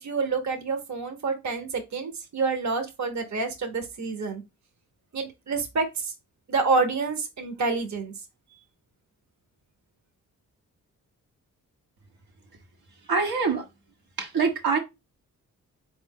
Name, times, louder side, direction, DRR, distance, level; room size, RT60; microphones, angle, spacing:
voice 1, 0.0-4.4 5.1-6.1 6.5-8.1, right 4 dB, 50° right, 1.0 m, -28 dB
voice 2, 13.1-13.7 14.2-14.8, right 5 dB, 75° right, 1.2 m, -24 dB
4.1 x 2.6 x 3.5 m
supercardioid pair, 45°, 36 cm